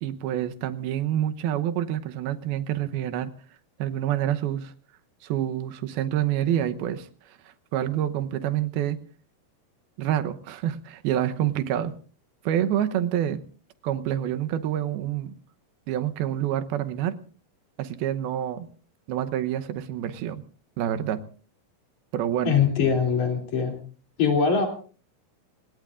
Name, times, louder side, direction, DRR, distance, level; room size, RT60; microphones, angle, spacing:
voice 1, 0.0-3.3 3.8-4.7 5.2-7.4 7.7-9.0 10.0-11.9 12.4-13.4 13.8-15.4 15.9-17.2 17.8-18.7 19.1-20.4 20.8-21.2 22.1-22.6, right 11 dB, 85° right, 9 dB, 2.9 m, -27 dB
voice 2, 22.4-23.8 24.2-24.7, left 6 dB, 50° left, 3 dB, 4.2 m, -22 dB
29.0 x 18.0 x 2.5 m, 0.39 s
omnidirectional pair, 4.3 m